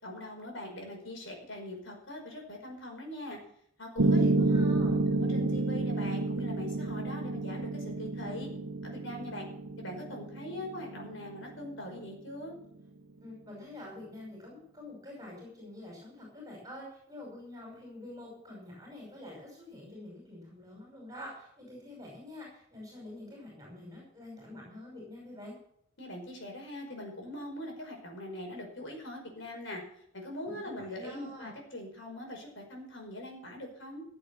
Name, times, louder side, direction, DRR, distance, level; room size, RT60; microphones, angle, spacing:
voice 1, 0.0-3.4 3.8-4.3 5.1-8.5 8.8-9.5 9.8-12.5 26.0-29.8 30.1-34.0, left 1 dB, 65° left, 1 dB, 5.2 m, -42 dB
voice 2, 4.0-5.0 13.2-25.6 30.4-31.5, left 1 dB, 20° right, -2 dB, 5.4 m, -46 dB
Piano, 4.0-12.0, right 2 dB, 90° right, 1.1 m, -30 dB
15.5 x 7.9 x 7.1 m, 0.68 s
head